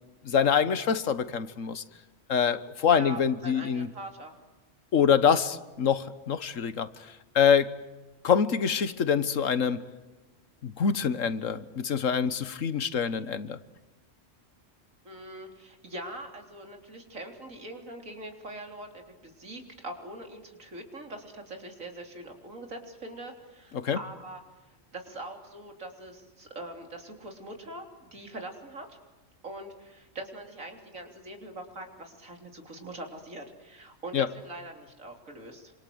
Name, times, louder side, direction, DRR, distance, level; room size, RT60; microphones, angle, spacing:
voice 1, 0.2-1.8 2.3-3.9 4.9-7.7 8.2-9.8 10.6-13.6 23.7-24.0 34.1-34.3, left 7 dB, 75° left, 1.6 m, -25 dB
voice 2, 2.9-4.3 15.0-24.4 24.9-29.0 29.4-35.7, right 1 dB, 85° right, 4.1 m, -42 dB
28.0 x 26.5 x 7.9 m
omnidirectional pair, 1.3 m